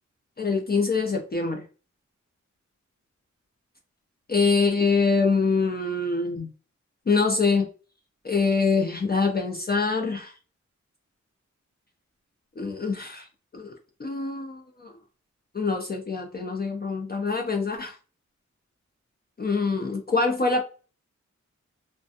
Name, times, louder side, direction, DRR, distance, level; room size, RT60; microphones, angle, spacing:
voice 1, 0.4-1.6 4.3-6.5 7.1-7.7 8.2-10.3 12.6-13.3 13.5-13.7 14.0-14.9 15.5-18.0 19.4-20.6, left 4 dB, 30° left, 2 dB, 0.5 m, -24 dB
2.4 x 2.2 x 2.7 m, 0.36 s
cardioid pair, 45°, 30 cm